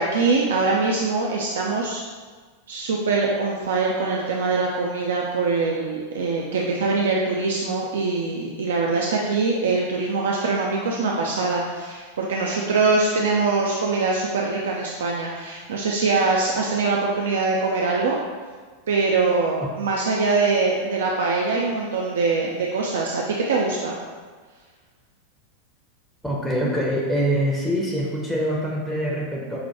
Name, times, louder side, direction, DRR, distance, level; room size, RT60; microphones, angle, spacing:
voice 1, 0.0-2.0 2.7-18.2 18.9-23.9, right 3 dB, 60° right, -2 dB, 0.3 m, -23 dB
voice 2, 26.2-29.6, equal, ahead, -5 dB, 0.6 m, -24 dB
5.5 x 2.2 x 2.9 m, 1.5 s
figure-of-eight pair, 90°, 0 cm